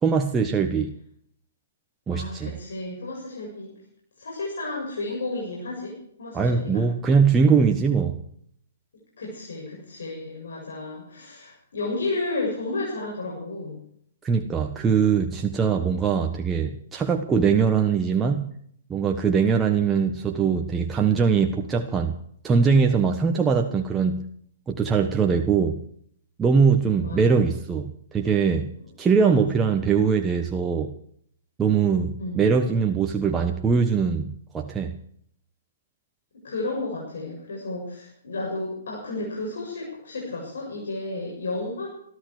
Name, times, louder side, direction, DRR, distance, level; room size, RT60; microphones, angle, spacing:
voice 1, 0.0-0.9 2.1-2.5 6.3-8.2 14.2-18.5 18.9-22.2 22.4-24.3 24.7-25.8 26.4-28.7 29.0-30.9 31.6-34.9, right 5 dB, 15° right, 3 dB, 1.4 m, -22 dB
voice 2, 2.1-3.8 4.2-6.9 9.2-13.8 27.0-27.4 29.2-29.4 32.2-32.4 36.4-41.9, left 2 dB, 75° left, -3 dB, 7.7 m, -32 dB
22.5 x 13.0 x 4.9 m, 0.66 s
hypercardioid pair, 130°, 0 cm